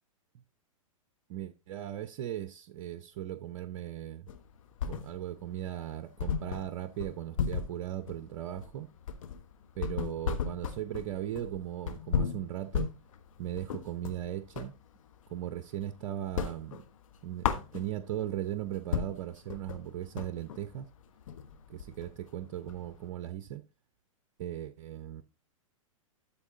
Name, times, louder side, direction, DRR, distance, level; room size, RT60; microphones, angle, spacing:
voice 1, 1.3-4.3 4.8-8.9 9.8-12.9 13.4-14.7 15.3-16.8 17.2-20.9 21.7-23.6 24.4-25.2, right 12 dB, 55° right, 0.8 m, -38 dB
sound 1, 4.3-5.4 5.8-5.9 6.2-14.8 15.2-15.9 16.2-18.2 18.6-18.7 18.9-23.1, left 7 dB, 70° left, 1.2 m, -35 dB
12.5 x 4.6 x 3.9 m
hypercardioid pair, 120°, 17 cm